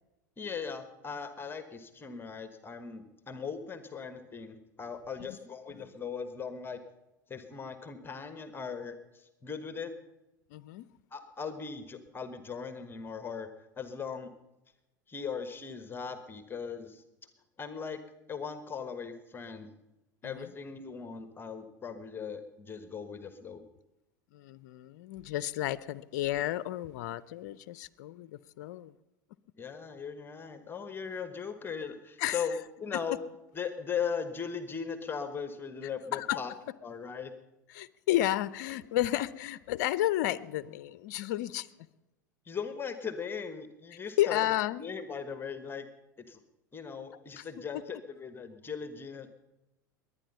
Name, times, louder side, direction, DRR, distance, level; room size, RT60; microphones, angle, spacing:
voice 1, 0.4-6.8 7.3-9.9 11.1-14.3 15.1-17.0 17.6-18.0 18.3-19.7 20.2-23.7 29.6-33.2 33.5-36.5 36.8-37.3 42.4-44.4 44.8-45.9 46.3-46.4 46.7-49.3, left 6 dB, 20° left, 1.3 m, -39 dB
voice 2, 10.5-10.9 20.2-20.5 24.3-28.9 32.2-32.4 36.1-36.4 37.7-41.7 44.2-44.8 47.4-47.5, left 14 dB, 60° left, 0.6 m, -32 dB
21.5 x 9.7 x 5.5 m
hypercardioid pair, 85°, 10 cm